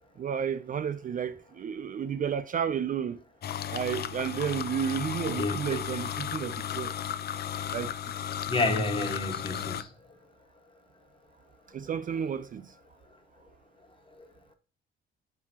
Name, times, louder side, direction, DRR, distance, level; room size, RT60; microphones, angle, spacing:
voice 1, 0.2-3.2 3.7-6.9 7.7-7.9 11.7-12.7, right 8 dB, 45° right, 0.4 m, -32 dB
sound 1, 3.4-9.8, left 10 dB, 55° left, 0.6 m, -34 dB
voice 2, 5.2-5.8 8.5-9.9 14.2-14.3, left 2 dB, 25° left, 1.5 m, -30 dB
9.4 x 3.7 x 2.9 m
cardioid pair, 90°, 20 cm